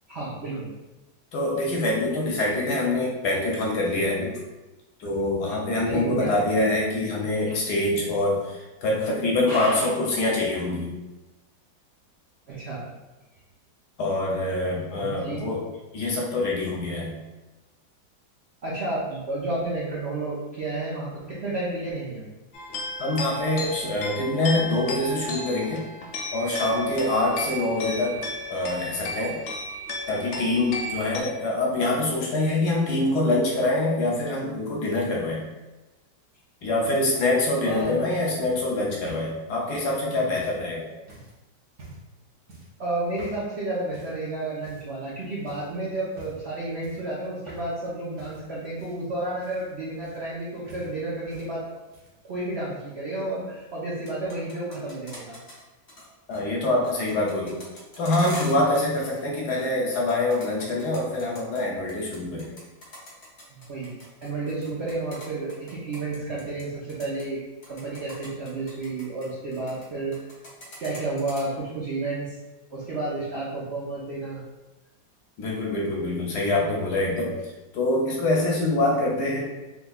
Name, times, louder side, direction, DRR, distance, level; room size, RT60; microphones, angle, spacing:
voice 1, 0.1-0.7 5.9-6.3 7.5-7.6 9.5-9.9 12.5-12.8 15.0-15.4 18.6-22.2 37.7-38.0 42.8-51.6 52.2-55.4 63.5-63.9 64.2-67.4 67.7-70.2 70.8-72.4 72.7-74.4, right 2 dB, 75° right, -6 dB, 0.6 m, -31 dB
voice 2, 1.3-4.3 5.0-10.9 14.0-15.6 15.9-17.2 23.0-25.8 26.3-28.2 28.5-29.4 30.1-35.4 36.6-40.9 56.3-57.6 58.0-62.5 75.4-79.4, left 2 dB, 70° left, -2 dB, 1.1 m, -25 dB
sound 1, 22.5-31.2, left 1 dB, 85° left, 0.7 m, -34 dB
sound 2, 37.8-40.6 41.1-41.4 41.7-42.1 42.5-42.8 43.2-43.5 43.9-44.2 44.6-45.1 45.5-45.7 46.1-46.5 46.8-47.9 48.2-50.4 50.7-51.5 51.8-52.3 53.2-53.3, right 1 dB, 45° right, 1.1 m, -48 dB
sound 3, 54.1-55.6 55.9-56.1 56.3-59.2 59.5-61.6 61.9-66.6 66.9-67.2 67.6-69.9 70.1-71.4, equal, 45° left, 0.8 m, -44 dB
3.5 x 3.1 x 2.3 m, 1.1 s
omnidirectional pair, 2.0 m